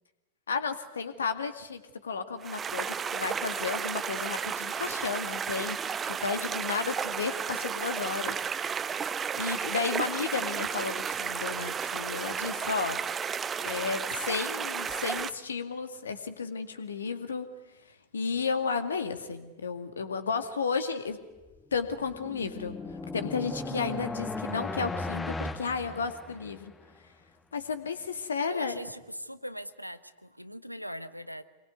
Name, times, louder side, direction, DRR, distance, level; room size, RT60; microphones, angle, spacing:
voice 1, 0.5-8.4 9.4-13.0 13.6-17.5 18.1-21.2 21.7-22.8 23.1-26.7 27.5-28.8, left 5 dB, 70° left, 9 dB, 2.1 m, -33 dB
sound 1, 2.4-15.3, right 7 dB, 20° right, 0.8 m, -33 dB
sound 2, 21.6-26.7, left 3 dB, 10° left, 1.2 m, -37 dB
voice 2, 28.5-31.4, equal, 90° right, 12 dB, 1.2 m, -40 dB
26.0 x 22.5 x 9.5 m, 1.1 s
figure-of-eight pair, 90°, 0 cm